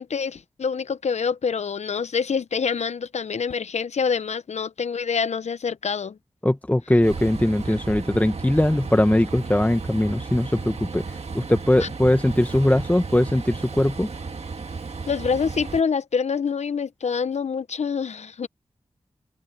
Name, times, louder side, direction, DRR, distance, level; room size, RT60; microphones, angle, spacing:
voice 1, 0.0-6.2 11.8-11.9 15.1-18.5, left 6 dB, 80° left, 0.8 m, -26 dB
voice 2, 6.4-14.1, left 1 dB, 15° left, 1.2 m, -21 dB
Train, 7.0-15.8, right 4 dB, 65° right, 1.8 m, -34 dB
cardioid pair, 45°, 11 cm